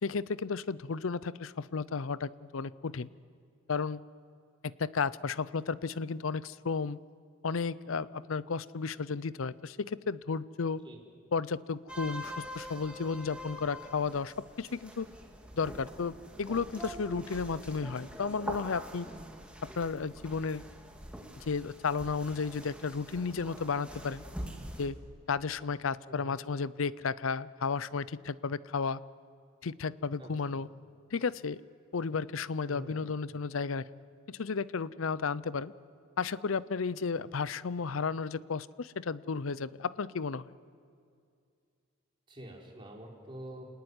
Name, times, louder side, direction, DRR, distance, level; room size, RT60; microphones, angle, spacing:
voice 1, 0.0-3.1 3.7-4.0 4.8-7.0 7.4-10.8 11.3-15.1 15.5-19.1 19.6-20.6 21.4-24.2 24.8-25.0 25.3-29.0 29.6-30.7 31.1-31.6 31.9-33.8 34.3-35.7 36.2-40.5, left 5 dB, 75° left, 18 dB, 0.6 m, -33 dB
wdzydze church, 11.9-24.8, equal, 5° right, 2.2 m, -45 dB
voice 2, 26.1-26.4 30.2-30.6 32.7-33.1 42.3-43.7, right 1 dB, 25° right, -2 dB, 4.2 m, -47 dB
28.0 x 18.5 x 9.7 m, 2.4 s
head